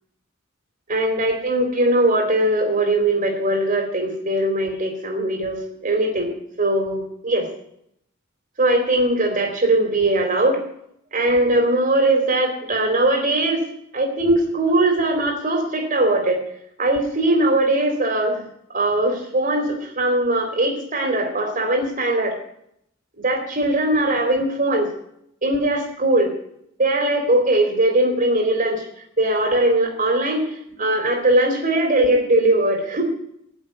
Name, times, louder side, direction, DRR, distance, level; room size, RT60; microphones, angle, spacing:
voice 1, 0.9-6.3 6.6-7.5 8.6-10.6 11.1-13.6 13.9-16.4 16.8-18.4 18.7-22.3 23.2-24.9 25.4-26.3 26.8-28.8 29.2-30.4 30.8-33.0, right 1 dB, 40° right, 3 dB, 3.7 m, -20 dB
16.0 x 7.5 x 10.0 m, 0.75 s
head